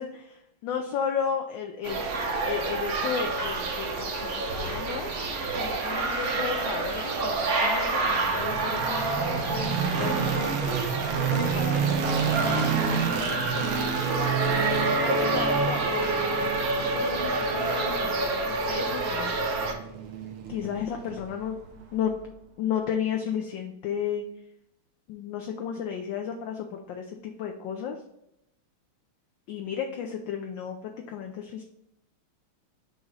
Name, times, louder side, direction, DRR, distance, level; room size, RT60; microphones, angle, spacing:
voice 1, 0.0-2.0 2.4-3.9 4.2-5.1 5.5-14.4 15.0-16.2 16.8-19.4 19.7-19.8 20.5-21.6 21.9-22.1 22.6-24.2 25.1-28.0 29.5-31.6, left 7 dB, 70° left, 3 dB, 1.2 m, -34 dB
sound 1, 1.8-19.7, right 3 dB, 55° right, 1.1 m, -28 dB
sound 2, 8.0-22.1, right 7 dB, 75° right, 1.7 m, -31 dB
6.3 x 3.0 x 5.3 m, 0.81 s
omnidirectional pair, 2.4 m